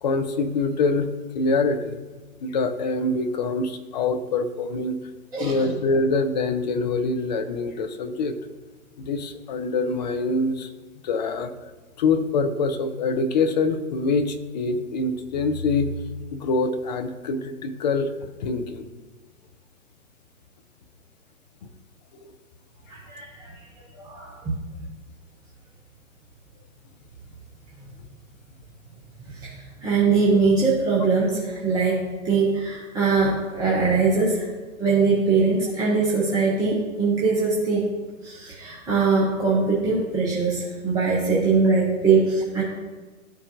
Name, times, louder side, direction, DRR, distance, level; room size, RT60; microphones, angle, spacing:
voice 1, 0.0-2.0 2.4-5.0 5.4-8.4 9.0-10.7 11.0-11.5 12.0-15.9 16.3-18.1 18.4-18.9, left 3 dB, 30° left, 8 dB, 0.5 m, -25 dB
voice 2, 5.3-5.7 22.9-23.6 23.9-24.4 29.3-34.5 34.8-37.9 38.2-42.6, right 4 dB, 10° right, -5 dB, 0.7 m, -22 dB
12.0 x 4.6 x 2.6 m, 1.3 s
figure-of-eight pair, 120°, 41 cm